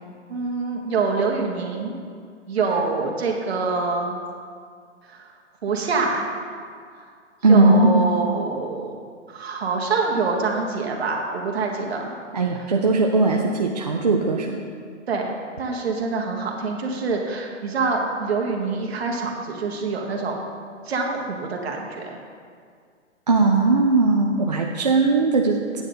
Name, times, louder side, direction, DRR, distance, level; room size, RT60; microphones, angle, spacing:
voice 1, 0.3-2.0 2.5-4.1 5.1-5.3 5.6-6.3 7.5-9.0 9.3-12.1 15.1-20.5 20.9-22.2, right 4 dB, 55° right, 0 dB, 1.7 m, -25 dB
voice 2, 7.4-8.1 12.3-14.6 23.3-25.8, right 3 dB, 35° right, 0 dB, 0.4 m, -19 dB
9.4 x 9.0 x 3.9 m, 2.1 s
hypercardioid pair, 170°, 37 cm